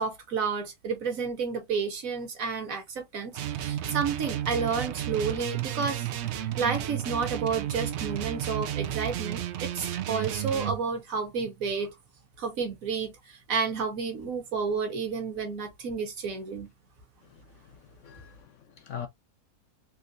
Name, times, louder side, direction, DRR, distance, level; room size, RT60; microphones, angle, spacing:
voice 1, 0.0-6.1 6.4-11.9 12.4-16.7, right 5 dB, 60° right, 1.5 m, -31 dB
sound 1, 3.3-10.8, right 11 dB, 90° right, 0.6 m, -32 dB
voice 2, 17.3-19.1, left 8 dB, 65° left, 0.8 m, -43 dB
3.6 x 2.6 x 2.5 m
omnidirectional pair, 1.7 m